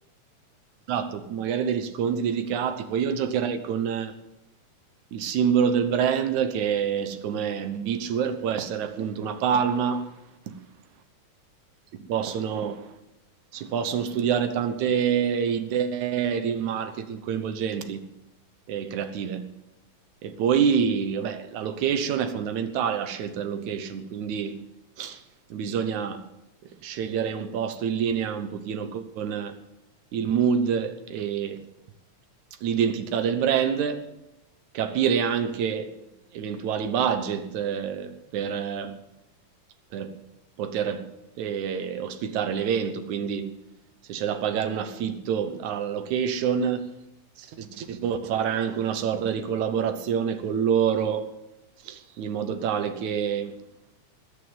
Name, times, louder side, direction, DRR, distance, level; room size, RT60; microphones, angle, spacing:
voice 1, 0.9-4.1 5.1-10.1 12.1-12.9 13.5-18.0 18.7-19.4 20.2-24.6 25.0-25.2 25.5-26.2 26.8-29.5 30.1-31.6 32.6-34.0 34.7-36.0 36.3-39.0 39.9-40.1 40.6-41.1 41.4-43.5 44.1-46.8 47.4-51.3 51.8-53.6, right 7 dB, 80° right, 2.5 m, -27 dB
19.5 x 6.9 x 9.0 m
omnidirectional pair, 3.3 m